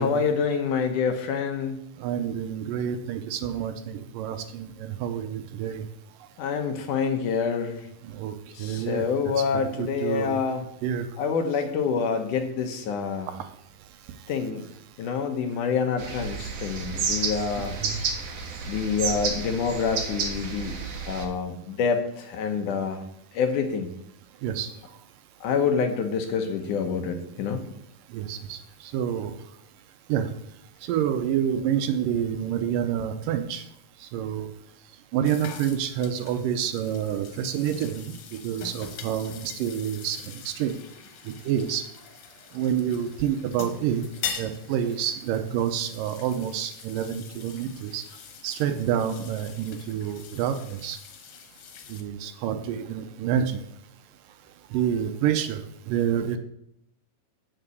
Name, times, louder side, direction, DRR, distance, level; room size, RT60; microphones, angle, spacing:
voice 1, 0.0-1.8 6.4-7.9 8.6-10.7 11.2-13.3 14.3-14.6 15.0-17.8 18.6-20.8 21.1-23.0 23.3-24.0 25.4-27.6, left 6 dB, 70° left, 6 dB, 2.2 m, -27 dB
voice 2, 2.0-5.9 8.0-9.1 9.4-9.5 9.8-10.4 10.8-11.1 13.3-13.5 17.6-18.0 24.4-24.7 28.1-29.3 30.1-30.3 30.8-33.7 34.0-34.5 35.1-38.1 38.4-40.8 41.3-41.9 42.5-44.1 44.4-48.0 48.4-51.0 51.9-53.6 54.7-56.4, right 9 dB, 75° right, 8 dB, 2.2 m, -28 dB
sound 1, 16.0-21.3, right 5 dB, 55° right, 2.0 m, -31 dB
sound 2, 35.2-52.0, left 8 dB, 85° left, 2.9 m, -42 dB
7.4 x 6.9 x 8.2 m, 0.75 s
omnidirectional pair, 4.2 m